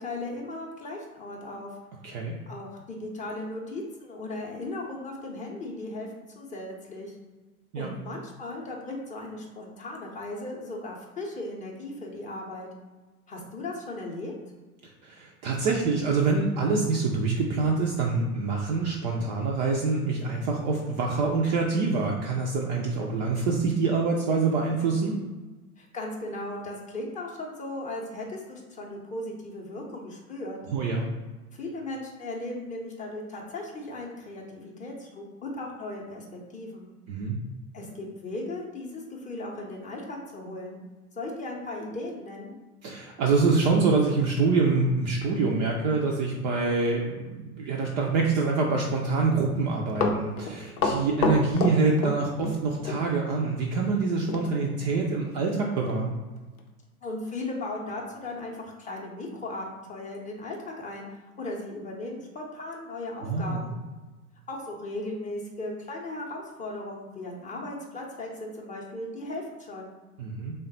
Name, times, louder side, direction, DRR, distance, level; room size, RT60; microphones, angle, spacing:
voice 1, 0.0-1.7 2.1-2.2 2.5-6.1 6.4-7.1 7.8-12.7 13.3-14.3 25.8-30.6 31.5-36.9 37.7-40.8 41.2-42.5 57.0-63.8 64.5-69.9, left 2 dB, 15° left, -1 dB, 0.6 m, -37 dB
voice 2, 15.0-25.2 30.7-31.1 37.1-37.3 42.8-56.2 63.2-63.7 70.2-70.5, right 4 dB, 35° right, -1 dB, 0.4 m, -25 dB
Run, 49.7-52.6 52.8-53.0 54.3-54.5 54.8-54.9 55.4-55.5 55.9-56.0 56.6-56.7, left 3 dB, 75° left, 0.7 m, -27 dB
3.4 x 2.2 x 4.0 m, 1.2 s
figure-of-eight pair, 85°, 45 cm